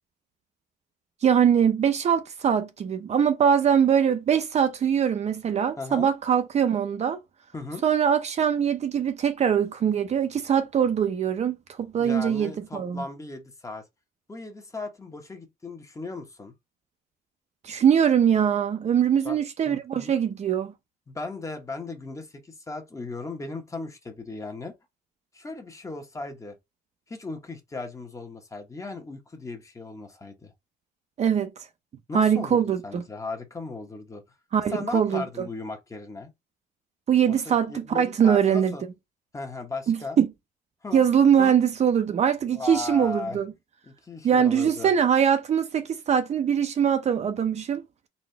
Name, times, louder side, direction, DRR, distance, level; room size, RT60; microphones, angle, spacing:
voice 1, 1.2-7.2 7.8-13.0 17.6-20.7 31.2-31.5 32.1-33.0 34.5-35.5 37.1-38.7 39.9-40.3 40.9-43.5 44.2-47.8, right 8 dB, 40° right, 0.7 m, -22 dB
voice 2, 5.8-6.1 7.5-7.8 12.0-13.8 14.3-16.5 19.2-20.1 21.1-24.7 25.3-26.6 27.1-30.5 32.1-34.2 34.7-36.3 37.3-38.8 39.3-40.2 40.8-41.0 41.4-41.5 42.5-43.4 43.9-44.9, left 3 dB, 20° left, 1.0 m, -37 dB
4.1 x 2.4 x 3.2 m
cardioid pair, 110°, 17 cm